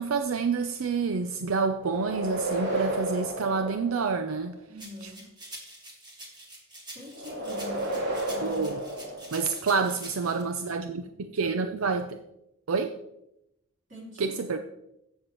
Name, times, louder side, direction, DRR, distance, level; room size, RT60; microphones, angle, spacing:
voice 1, 0.0-4.5 8.4-8.8 9.3-12.2 12.7-13.0 14.2-14.6, right 5 dB, 75° right, 8 dB, 0.5 m, -28 dB
sound 1, 1.8-4.5 7.1-9.9, right 1 dB, 55° right, 2.8 m, -33 dB
voice 2, 4.7-5.3 6.9-8.7 9.0-9.1 13.9-14.4, left 1 dB, 40° right, -4 dB, 3.6 m, -44 dB
sound 2, 4.8-10.4, right 1 dB, 20° right, 1.8 m, -46 dB
15.0 x 6.6 x 3.0 m, 0.83 s
head